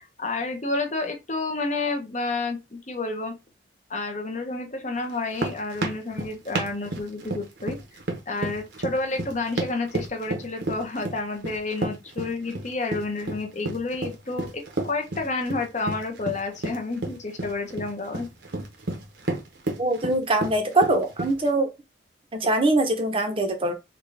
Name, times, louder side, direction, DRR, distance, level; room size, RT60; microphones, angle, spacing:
voice 1, 0.0-3.3 3.9-7.8 8.3-18.3, left 3 dB, 40° left, 0.9 m, -30 dB
sound 1, 5.1-21.5, right 2 dB, 60° right, 0.9 m, -32 dB
voice 2, 19.8-21.7 22.3-23.7, right 2 dB, 30° right, 0.8 m, -23 dB
3.7 x 2.4 x 3.3 m
head